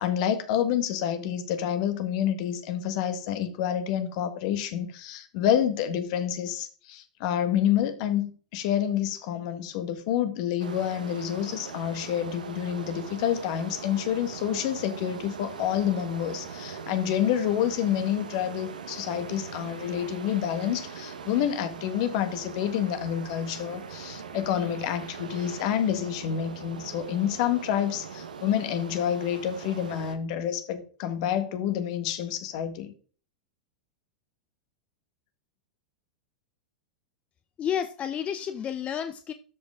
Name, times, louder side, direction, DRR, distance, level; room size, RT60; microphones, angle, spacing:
voice 1, 0.0-32.9, left 10 dB, 55° left, 1.6 m, -28 dB
sound 1, 10.6-30.2, right 6 dB, 85° right, 1.3 m, -41 dB
voice 2, 37.6-39.3, left 9 dB, 30° left, 0.7 m, -31 dB
12.5 x 5.4 x 3.5 m
hypercardioid pair, 100°, 4 cm